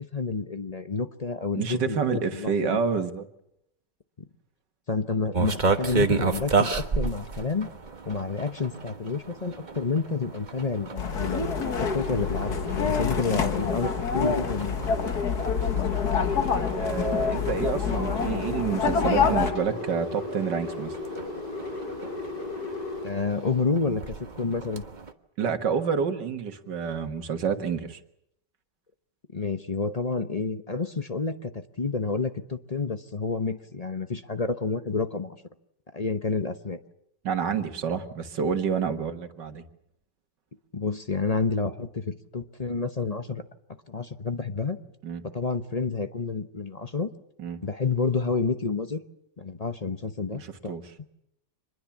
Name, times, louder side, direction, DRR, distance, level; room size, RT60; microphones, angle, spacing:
voice 1, 0.1-2.8 4.9-7.7 8.1-11.6 11.9-14.8 23.0-24.8 29.3-31.5 31.8-35.4 35.9-36.8 40.7-43.4 43.9-44.8 45.3-47.1 47.6-49.0 49.4-50.8, left 4 dB, 30° left, 9 dB, 0.8 m, -29 dB
voice 2, 1.6-3.2 15.8-16.0 16.7-20.9 25.4-28.0 37.2-39.6 45.0-45.2 47.4-47.6 50.3-50.8, right 6 dB, 85° right, 8 dB, 2.2 m, -28 dB
sound 1, 5.3-25.1, right 4 dB, 30° right, 1.3 m, -33 dB
sound 2, 11.0-19.5, left 6 dB, 65° left, 2.2 m, -27 dB
sound 3, 11.2-23.6, left 3 dB, 85° left, 6.0 m, -36 dB
26.0 x 20.5 x 7.3 m, 0.78 s
omnidirectional pair, 1.8 m